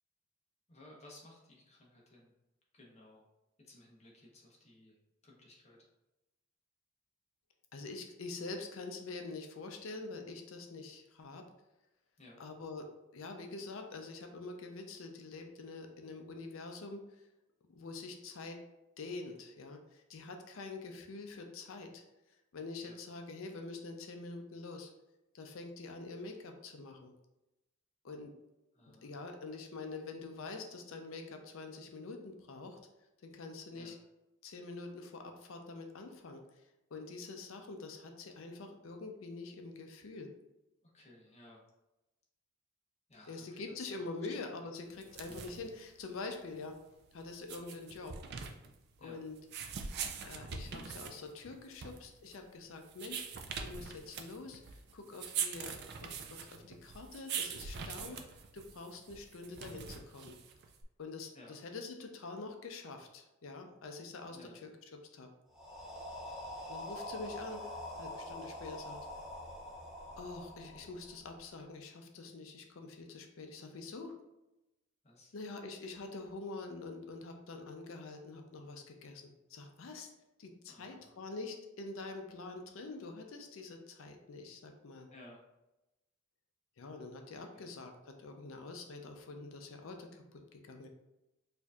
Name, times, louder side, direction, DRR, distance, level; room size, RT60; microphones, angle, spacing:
voice 1, 0.7-2.3 2.7-3.3 3.6-5.0 5.2-5.8 12.2-12.4 22.8-23.0 28.7-29.1 33.7-34.0 40.8-41.6 43.1-44.0 49.0-49.2 58.0-58.2 61.3-61.6 64.3-64.6 75.0-75.3 80.7-81.2 85.1-85.4 87.5-87.7, left 1 dB, 30° left, -2 dB, 0.8 m, -57 dB
voice 2, 7.7-11.4 12.4-17.3 17.7-18.6 19.0-22.0 22.5-24.9 25.3-27.1 28.0-28.3 29.0-32.8 33.2-34.0 34.4-36.6 36.9-40.3 43.3-46.7 47.1-48.2 49.0-49.4 50.2-58.2 58.5-60.4 61.0-65.3 66.7-69.0 70.2-74.2 75.3-80.1 80.4-85.1 86.8-90.9, left 3 dB, 75° left, 5 dB, 0.5 m, -46 dB
sound 1, 44.9-60.8, right 6 dB, 50° right, 0.3 m, -43 dB
sound 2, 65.5-71.4, left 1 dB, ahead, 0.6 m, -45 dB
4.4 x 2.6 x 2.3 m, 0.96 s
head